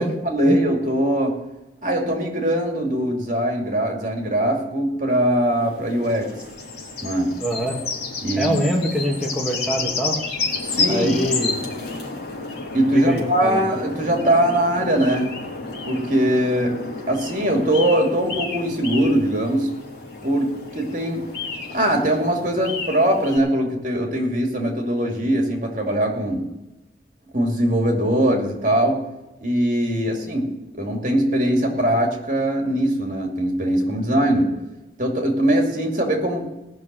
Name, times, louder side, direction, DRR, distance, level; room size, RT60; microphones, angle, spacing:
voice 1, 0.0-1.3 1.8-6.3 7.0-7.3 8.2-8.6 10.6-11.1 12.7-15.3 15.8-16.8 17.1-19.7 20.2-21.2 21.7-26.4 27.3-29.0 29.4-30.4 30.7-34.5 35.0-36.5, right 1 dB, 45° right, 1 dB, 2.6 m, -21 dB
sound 1, 5.2-23.4, left 4 dB, 65° left, 3.6 m, -31 dB
voice 2, 7.4-7.8 8.4-10.2 10.9-11.5 12.9-13.6 30.1-30.2, equal, ahead, -2 dB, 1.6 m, -24 dB
18.5 x 6.5 x 7.7 m, 1.0 s
head